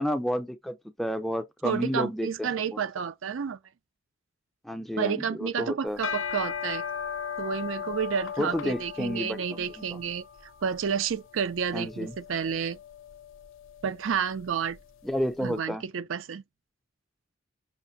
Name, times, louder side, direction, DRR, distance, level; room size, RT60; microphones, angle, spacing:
voice 1, 0.0-2.5 4.6-6.0 8.4-10.0 11.7-12.1 15.0-15.8, equal, ahead, 0.4 m, -31 dB
voice 2, 1.6-3.6 5.0-6.8 7.4-10.3 10.6-12.8 13.8-14.8 15.4-16.4, right 7 dB, 70° right, 0.5 m, -30 dB
sound 1, 5.9-15.2, left 7 dB, 70° left, 0.5 m, -38 dB
5.7 x 2.5 x 2.6 m
head